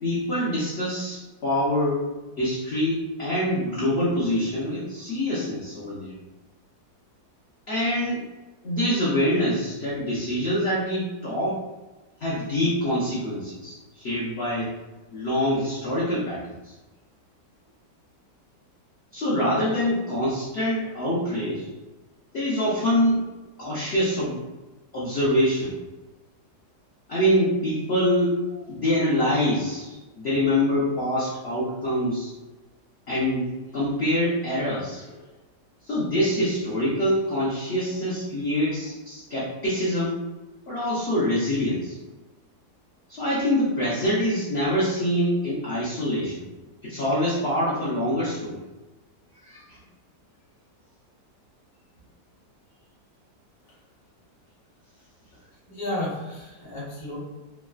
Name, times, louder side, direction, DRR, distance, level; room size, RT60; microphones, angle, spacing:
voice 1, 0.0-2.0 2.4-6.1 7.7-8.2 8.6-11.6 12.2-14.7 15.1-16.7 19.1-21.7 22.3-23.3 23.6-24.4 24.9-25.8 27.1-28.4 28.7-32.3 33.1-35.2 35.8-40.2 40.7-42.0 43.1-46.4 46.8-48.6 49.4-49.8, equal, 60° left, -8 dB, 0.6 m, -25 dB
voice 2, 55.4-57.2, left 1 dB, 25° left, -7 dB, 0.5 m, -33 dB
3.2 x 2.0 x 2.3 m, 1.1 s
omnidirectional pair, 1.8 m